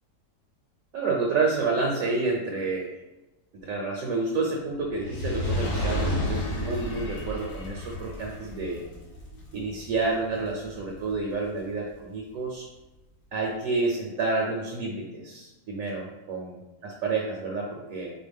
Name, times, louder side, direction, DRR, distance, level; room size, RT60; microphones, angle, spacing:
voice 1, 0.9-2.9 3.6-8.8 9.5-12.7 13.3-18.1, right 3 dB, 65° right, -1 dB, 1.0 m, -29 dB
Fire, 4.9-11.3 12.0-12.1, left 1 dB, 85° left, 1.7 m, -32 dB
4.6 x 2.2 x 3.4 m, 1.0 s
omnidirectional pair, 1.7 m